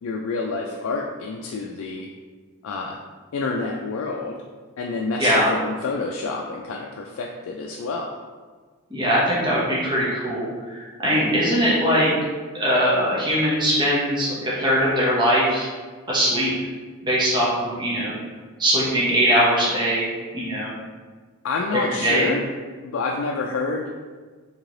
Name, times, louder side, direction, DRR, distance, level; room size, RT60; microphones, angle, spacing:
voice 1, 0.0-2.1 2.6-3.0 3.3-4.4 4.8-8.2 21.4-22.5 22.8-23.9, left 3 dB, 80° left, 0 dB, 0.3 m, -28 dB
voice 2, 5.2-5.6 8.9-12.1 12.5-15.7 16.1-16.5 17.0-18.1 18.6-20.7 21.7-22.3, equal, 20° right, -7 dB, 0.8 m, -21 dB
3.2 x 2.9 x 3.8 m, 1.4 s
head